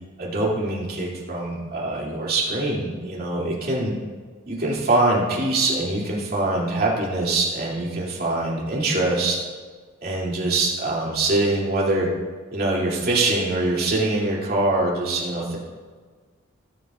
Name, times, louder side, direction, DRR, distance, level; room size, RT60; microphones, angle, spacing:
voice 1, 0.2-4.0 4.5-9.4 10.0-12.1 12.5-15.6, right 2 dB, 50° right, -4 dB, 2.7 m, -23 dB
18.0 x 7.3 x 2.5 m, 1.5 s
head